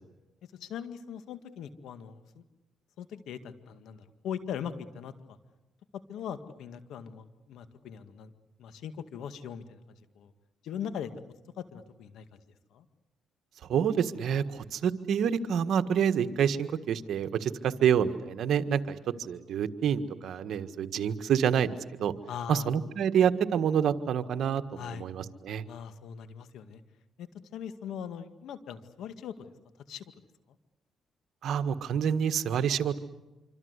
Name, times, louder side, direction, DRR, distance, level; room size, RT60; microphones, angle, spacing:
voice 1, 0.6-2.4 3.0-5.1 5.9-8.3 8.6-9.8 10.2-10.3 10.6-11.1 11.6-12.3 12.7-12.9 22.3-22.7 24.7-25.1 25.6-26.8 27.2-29.5 29.9-30.1, left 8 dB, 75° left, 10 dB, 2.0 m, -40 dB
voice 2, 13.7-21.7 22.0-22.1 22.5-25.6 31.4-33.0, right 8 dB, 70° right, 10 dB, 1.6 m, -27 dB
26.5 x 25.5 x 8.2 m, 1.1 s
cardioid pair, 90°, 0 cm